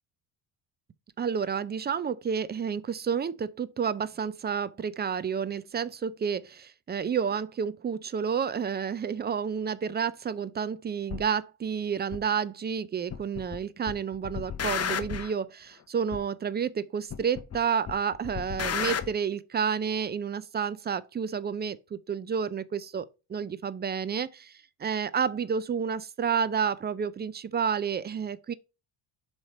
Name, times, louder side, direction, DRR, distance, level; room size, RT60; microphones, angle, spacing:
voice 1, 1.2-24.5 24.8-28.5, right 7 dB, 25° right, 0.4 m, -30 dB
sound 1, 11.1-11.2 12.1-12.2 13.1-13.6 13.9-15.3 16.1-16.2 17.1-17.6 17.9-19.1, left 7 dB, 30° left, 0.8 m, -32 dB
7.2 x 3.2 x 4.2 m
cardioid pair, 95°, 47 cm